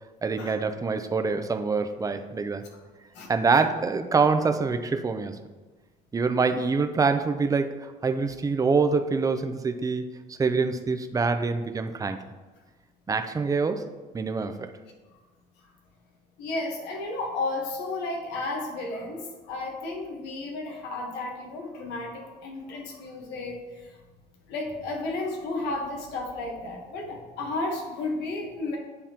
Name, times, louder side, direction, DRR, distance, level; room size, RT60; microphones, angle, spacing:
voice 1, 0.2-2.6 3.3-5.4 6.1-12.2 13.1-13.9 14.1-14.7, right 4 dB, 20° right, 8 dB, 0.5 m, -25 dB
voice 2, 3.1-3.6 15.6-15.7 16.4-24.0 24.5-28.8, left 2 dB, 90° left, 1 dB, 1.2 m, -33 dB
9.6 x 3.5 x 2.9 m, 1.3 s
cardioid pair, 110°, 17 cm